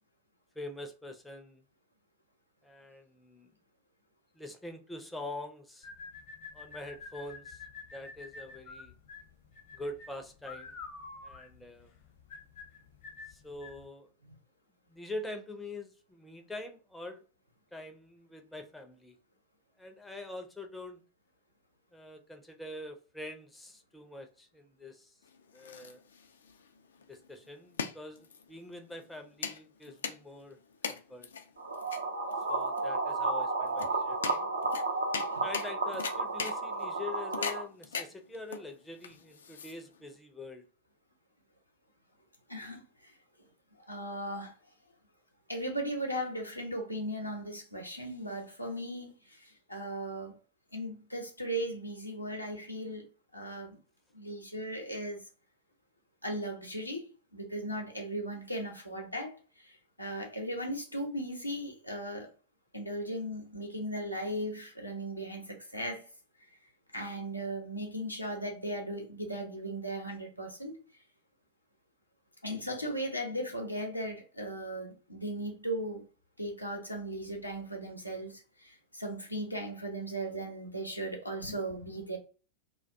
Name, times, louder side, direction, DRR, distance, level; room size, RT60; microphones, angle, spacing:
voice 1, 0.6-1.6 2.6-3.5 4.3-5.9 6.5-7.6 7.9-8.9 9.7-10.8 11.2-11.9 13.3-14.1 14.9-17.2 17.7-19.2 19.8-21.0 21.9-25.2 25.5-26.0 27.1-30.6 30.9-31.3 32.5-34.5 35.4-40.7, left 2 dB, 5° left, 0.4 m, -44 dB
sound 1, 5.8-13.9, left 4 dB, 45° left, 0.7 m, -48 dB
sound 2, 25.2-40.1, left 6 dB, 65° left, 0.3 m, -41 dB
sound 3, 31.6-37.6, right 3 dB, 75° right, 0.5 m, -32 dB
voice 2, 42.5-43.1 43.8-44.5 45.5-50.4 50.7-53.1 53.3-53.8 54.1-55.2 56.2-57.1 57.3-62.3 62.7-66.0 66.9-70.8 72.4-76.0 76.4-82.2, right 1 dB, 90° left, 0.7 m, -37 dB
2.3 x 2.2 x 2.6 m
figure-of-eight pair, 90°, 0 cm